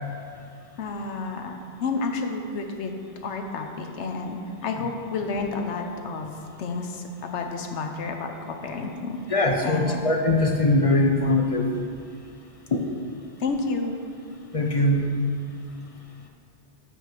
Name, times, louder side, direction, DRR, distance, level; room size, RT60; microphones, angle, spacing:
voice 1, 0.8-2.9 3.2-9.2 9.6-10.1 13.4-14.0, left 3 dB, 90° left, 4 dB, 1.1 m, -30 dB
voice 2, 9.3-11.8 12.7-12.8 14.5-15.1, left 2 dB, 40° left, 1 dB, 0.6 m, -21 dB
6.2 x 5.5 x 5.8 m, 2.2 s
omnidirectional pair, 1.1 m